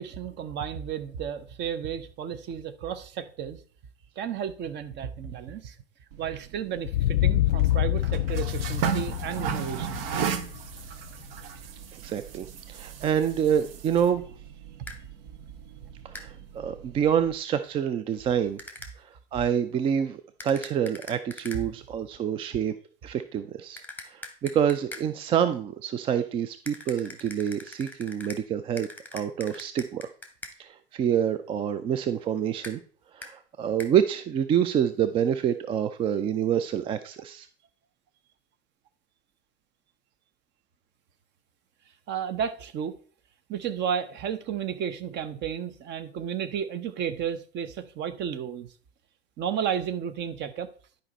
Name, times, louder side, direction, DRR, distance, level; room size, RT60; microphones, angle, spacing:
voice 1, 0.0-3.6 4.2-5.8 6.2-10.0 42.1-42.9 43.5-48.7 49.4-50.7, right 8 dB, 35° right, 0.9 m, -33 dB
sound 1, 6.1-17.3, right 8 dB, 60° right, 1.1 m, -36 dB
sound 2, 6.9-11.5, left 14 dB, 65° left, 0.5 m, -27 dB
voice 2, 12.0-14.2 16.0-18.6 19.0-22.7 23.0-30.1 30.6-32.8 33.1-37.5, right 9 dB, 20° right, 0.3 m, -27 dB
sound 3, 14.9-15.0 16.1-16.3 18.6-18.9 20.4-21.6 23.8-25.1 26.7-28.4 28.8-30.6 32.6-32.8 33.2-33.3 33.8-33.9, left 2 dB, 5° left, 1.3 m, -42 dB
11.0 x 5.2 x 4.0 m
figure-of-eight pair, 90°, 32 cm